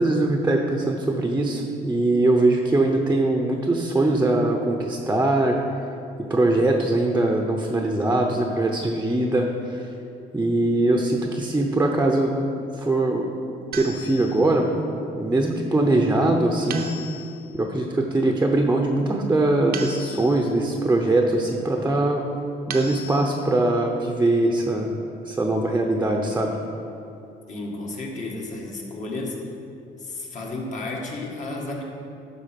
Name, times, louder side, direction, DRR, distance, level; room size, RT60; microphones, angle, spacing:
voice 1, 0.0-5.6 6.3-9.9 10.3-12.3 12.8-13.3 13.7-14.7 15.1-16.9 17.5-22.2 22.7-24.9 25.3-26.6, right 2 dB, 10° right, 2 dB, 0.7 m, -22 dB
sound 1, 13.7-14.6 16.7-17.6 19.7-20.6 22.7-23.6, right 3 dB, 70° right, 0.8 m, -37 dB
voice 2, 27.5-29.4 30.0-31.8, left 2 dB, 45° left, -1 dB, 1.7 m, -32 dB
12.0 x 4.0 x 5.9 m, 2.6 s
cardioid pair, 110°, 17 cm